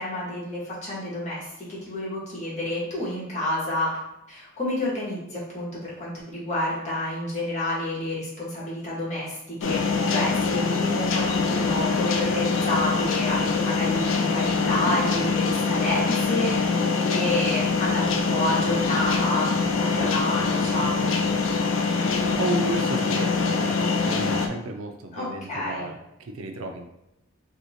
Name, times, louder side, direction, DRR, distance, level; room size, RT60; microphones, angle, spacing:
voice 1, 0.0-3.9 4.3-21.1 25.1-25.9, left 1 dB, 35° left, -6 dB, 1.3 m, -29 dB
sound 1, 9.6-24.5, left 4 dB, 70° left, 0.4 m, -24 dB
voice 2, 22.1-26.9, right 2 dB, 90° right, 4 dB, 0.5 m, -33 dB
2.8 x 2.8 x 4.2 m, 0.88 s
head